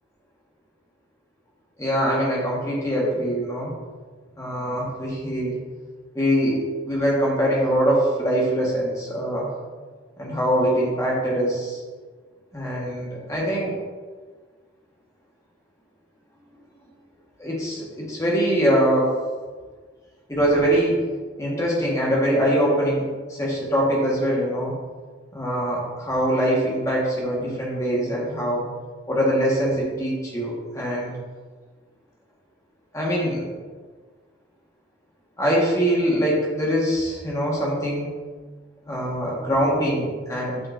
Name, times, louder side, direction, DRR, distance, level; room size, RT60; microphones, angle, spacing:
voice 1, 1.8-3.7 4.4-5.5 6.1-9.5 10.2-11.8 12.5-13.7 17.4-19.1 20.3-21.1 21.4-24.7 25.3-28.6 29.1-31.1 32.9-33.5 35.4-38.1 38.8-40.6, equal, 15° left, -4 dB, 1.5 m, -23 dB
7.7 x 5.7 x 2.6 m, 1.4 s
head